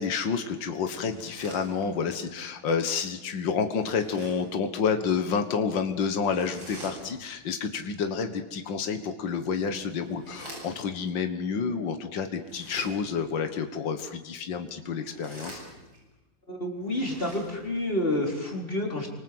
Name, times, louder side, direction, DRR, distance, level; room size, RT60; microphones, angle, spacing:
voice 1, 0.0-15.6, left 6 dB, 75° left, 7 dB, 2.2 m, -29 dB
sound 1, 1.0-2.2 3.7-4.6 6.2-7.4 9.2-11.0 12.4-13.2 14.9-16.1 16.8-17.9, right 1 dB, 90° right, 9.0 m, -46 dB
voice 2, 16.5-19.1, left 1 dB, 30° left, 0 dB, 4.7 m, -29 dB
30.0 x 25.0 x 8.0 m, 1.0 s
omnidirectional pair, 2.1 m